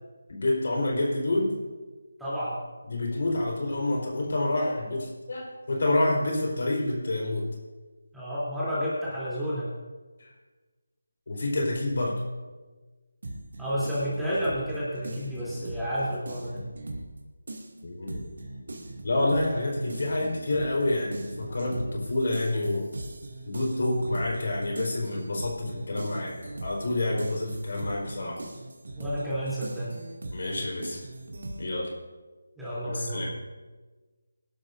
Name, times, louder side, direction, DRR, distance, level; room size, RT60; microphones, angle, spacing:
voice 1, 0.3-1.6 2.9-7.5 10.2-10.3 11.3-12.2 17.8-18.3 19.0-22.9 23.4-28.4 30.3-31.0 31.6-31.9 32.9-33.3, left 2 dB, 60° left, -1 dB, 4.4 m, -28 dB
voice 2, 2.2-2.6 8.1-9.7 13.6-16.6 28.9-30.0 32.6-33.2, equal, ahead, -12 dB, 3.3 m, -30 dB
sound 1, 13.2-17.2 17.5-31.6, right 2 dB, 60° right, 2.4 m, -40 dB
23.5 x 12.0 x 2.7 m, 1.3 s
figure-of-eight pair, 160°, 0 cm